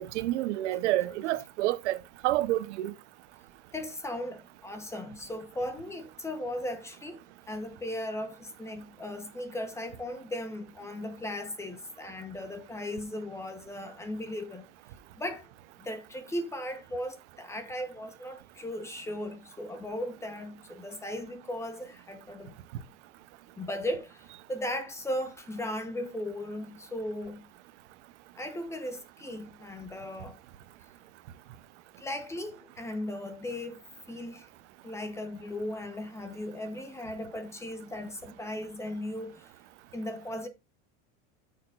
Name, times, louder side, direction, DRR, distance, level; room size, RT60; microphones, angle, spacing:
voice 1, 0.0-2.0 2.2-2.9, right 15 dB, 75° right, 0.9 m, -28 dB
voice 2, 3.7-7.2 7.5-14.6 15.2-15.5 15.8-22.5 23.6-27.5 28.4-30.4 32.0-34.5 34.8-39.5 39.9-40.5, left 1 dB, 10° left, 0.9 m, -37 dB
13.0 x 6.6 x 2.5 m
supercardioid pair, 165°, 35 cm